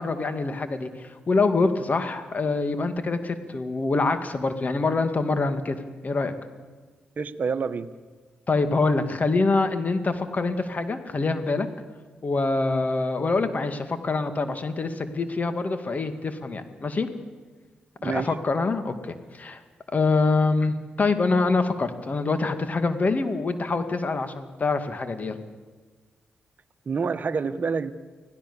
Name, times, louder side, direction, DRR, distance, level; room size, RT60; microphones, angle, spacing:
voice 1, 0.0-5.8 6.0-6.3 8.5-11.7 12.2-17.1 18.0-19.6 19.9-25.4, left 3 dB, 45° left, 9 dB, 2.2 m, -25 dB
voice 2, 7.2-7.9 18.0-18.3 26.9-27.9, right 5 dB, 50° right, 10 dB, 1.2 m, -27 dB
25.0 x 16.5 x 7.1 m, 1.4 s
supercardioid pair, 50°, 4 cm